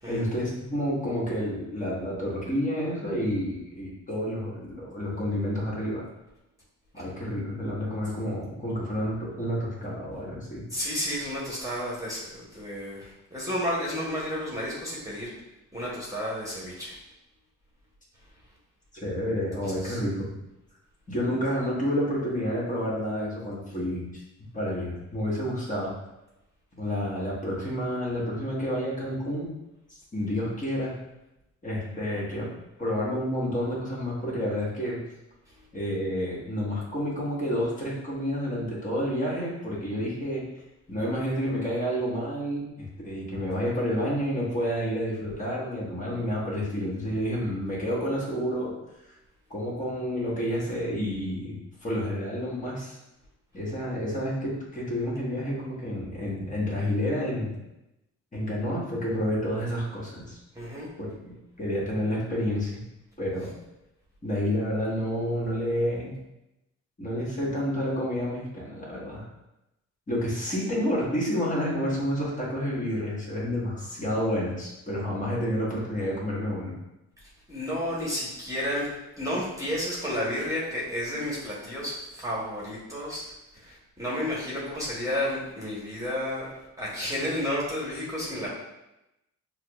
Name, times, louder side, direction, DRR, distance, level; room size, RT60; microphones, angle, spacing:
voice 1, 0.1-6.1 6.9-10.6 18.9-20.4 21.1-24.2 24.5-25.9 26.8-29.5 30.1-30.9 31.6-32.5 32.8-35.0 35.7-40.4 40.9-48.7 49.0-49.1 49.5-51.5 51.8-53.0 53.5-57.6 58.3-60.4 61.0-62.8 63.2-63.5 64.2-66.1 67.0-69.2 70.1-76.7, equal, 25° left, -6 dB, 1.3 m, -29 dB
voice 2, 10.7-15.3 15.7-17.0 19.6-20.0 35.5-35.6 60.5-60.9 77.5-83.3 83.6-86.5 86.8-88.5, left 1 dB, 10° right, -6 dB, 1.1 m, -32 dB
5.9 x 2.0 x 2.4 m, 0.92 s
cardioid pair, 90°, 30 cm